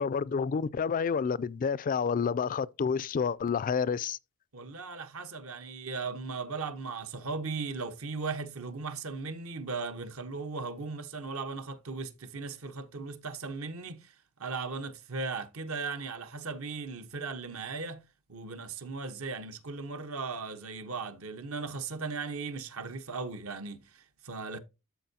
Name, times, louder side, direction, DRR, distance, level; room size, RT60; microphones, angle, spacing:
voice 1, 0.0-4.2, left 6 dB, 40° left, 0.3 m, -29 dB
voice 2, 4.5-14.1 14.4-18.0 18.3-24.6, right 4 dB, 70° right, 1.0 m, -37 dB
13.0 x 4.6 x 2.8 m
head